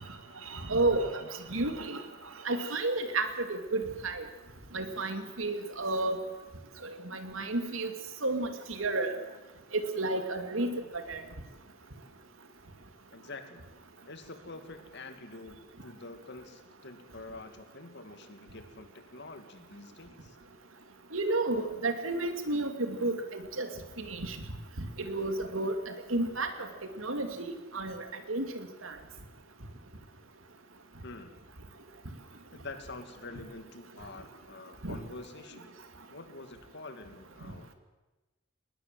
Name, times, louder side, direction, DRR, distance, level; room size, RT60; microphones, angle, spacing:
voice 1, 0.4-2.0 2.4-4.3 4.7-6.2 6.8-7.9 8.2-9.2 9.7-11.2 21.1-23.7 24.0-24.4 25.0-26.7 27.0-27.3 27.7-29.0 34.8-35.0, right 2 dB, 85° right, 7 dB, 2.5 m, -32 dB
voice 2, 13.1-13.6 14.1-20.4 31.0-31.3 32.5-35.7 36.1-37.7, left 3 dB, 60° left, 7 dB, 2.4 m, -47 dB
21.0 x 19.0 x 7.7 m, 1.1 s
head